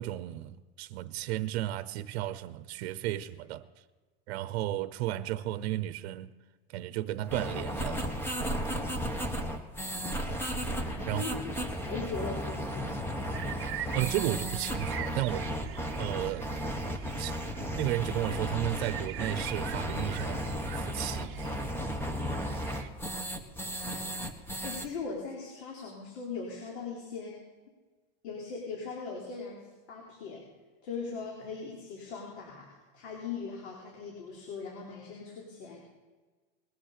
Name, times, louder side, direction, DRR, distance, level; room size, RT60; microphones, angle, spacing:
voice 1, 0.0-3.6 4.3-6.3 6.7-8.1 11.1-11.3 13.9-15.5 16.0-16.5 17.2-17.3 17.8-20.4 20.7-21.4, right 14 dB, 75° right, 0.8 m, -33 dB
sound 1, 7.3-24.9, equal, 5° left, 1.5 m, -34 dB
voice 2, 10.8-12.9 24.6-27.4 28.2-30.4 30.8-35.8, left 5 dB, 85° left, 3.9 m, -40 dB
sound 2, 13.2-22.9, right 9 dB, 40° right, 1.0 m, -42 dB
20.5 x 7.3 x 6.7 m
supercardioid pair, 140°, 32 cm